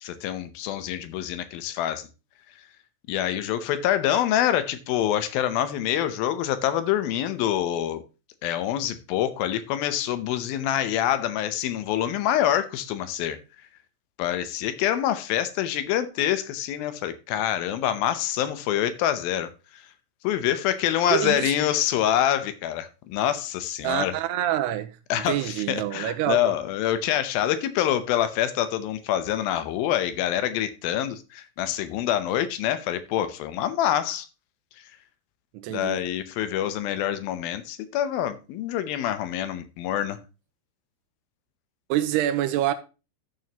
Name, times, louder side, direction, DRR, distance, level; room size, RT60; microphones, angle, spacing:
voice 1, 0.0-2.1 3.1-8.0 8.4-13.4 14.2-19.5 20.2-24.1 25.1-34.3 35.7-40.2, left 11 dB, 75° left, 2.3 m, -26 dB
voice 2, 21.1-21.5 23.8-26.5 35.5-36.0 41.9-42.7, right 12 dB, 80° right, 2.8 m, -26 dB
13.5 x 6.3 x 2.9 m
omnidirectional pair, 4.8 m